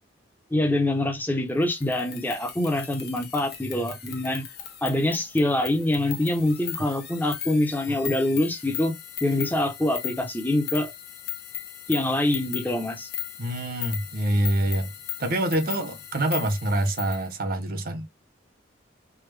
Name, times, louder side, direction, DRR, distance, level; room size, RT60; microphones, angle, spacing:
voice 1, 0.5-4.4 4.8-9.0 9.2-10.9 11.9-13.1, left 1 dB, 10° left, 0.7 m, -25 dB
sound 1, 1.6-17.3, left 11 dB, 50° left, 0.8 m, -38 dB
voice 2, 13.4-14.9 15.2-18.1, right 1 dB, 45° right, 0.6 m, -26 dB
3.5 x 2.1 x 3.2 m
head